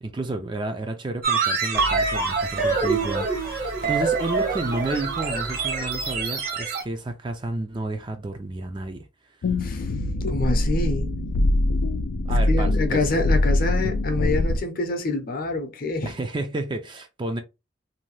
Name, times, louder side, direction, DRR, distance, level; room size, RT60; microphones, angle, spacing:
voice 1, 0.0-9.1 12.3-13.1 16.1-17.4, right 2 dB, 25° right, 0.3 m, -31 dB
sound 1, 1.2-6.8, right 4 dB, 50° right, 0.8 m, -25 dB
sound 2, 1.7-6.7, equal, 80° right, 1.2 m, -39 dB
sound 3, 9.4-14.6, left 2 dB, 85° left, 0.4 m, -23 dB
voice 2, 10.3-11.1 12.5-16.1, left 2 dB, 50° left, 0.6 m, -26 dB
2.7 x 2.2 x 3.1 m
head